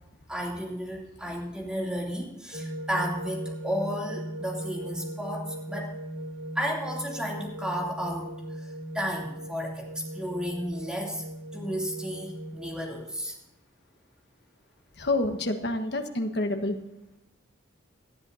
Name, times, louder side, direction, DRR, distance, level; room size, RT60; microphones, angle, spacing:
voice 1, 0.3-5.9 6.5-11.2 11.5-13.4, equal, 5° right, -2 dB, 2.8 m, -33 dB
sound 1, 2.5-13.0, right 1 dB, 75° right, 2.6 m, -38 dB
voice 2, 15.0-16.8, left 2 dB, 55° left, 6 dB, 1.3 m, -28 dB
19.0 x 12.0 x 2.8 m, 0.90 s
head